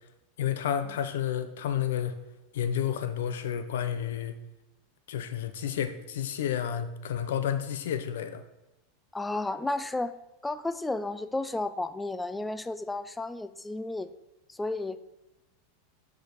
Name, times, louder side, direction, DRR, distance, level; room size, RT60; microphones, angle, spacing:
voice 1, 0.4-2.1 2.5-4.3 5.1-8.4, left 9 dB, 80° left, 11 dB, 0.7 m, -30 dB
voice 2, 9.1-10.1 10.4-14.1 14.5-15.0, left 2 dB, 5° left, 13 dB, 0.3 m, -32 dB
6.5 x 5.1 x 5.0 m, 0.95 s
supercardioid pair, 155°, 0 cm